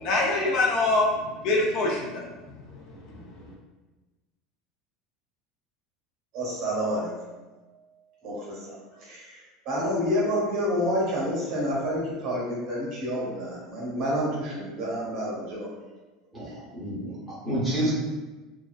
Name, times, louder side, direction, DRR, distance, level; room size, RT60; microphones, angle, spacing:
voice 1, 0.0-2.3 3.1-3.4, left 2 dB, 40° left, -2 dB, 0.3 m, -25 dB
voice 2, 6.3-7.1 8.2-8.7 9.0-9.4 9.7-15.7, equal, 40° right, -5 dB, 0.8 m, -28 dB
voice 3, 16.3-17.9, right 1 dB, 5° right, -9 dB, 0.6 m, -29 dB
2.4 x 2.3 x 2.2 m, 1.2 s
cardioid pair, 175°, 0 cm